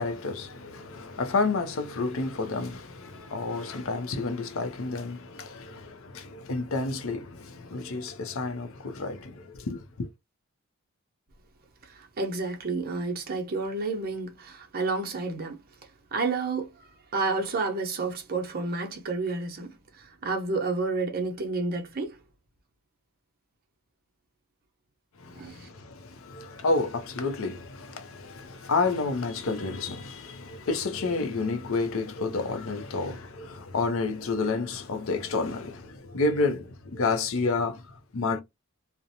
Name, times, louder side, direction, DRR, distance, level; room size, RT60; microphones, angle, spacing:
voice 1, 0.0-10.1 25.2-38.4, left 3 dB, 65° left, 0.5 m, -30 dB
voice 2, 11.9-15.6 16.1-16.7 17.1-22.2 25.3-25.5, right 3 dB, 45° right, 0.7 m, -30 dB
2.5 x 2.1 x 2.8 m
head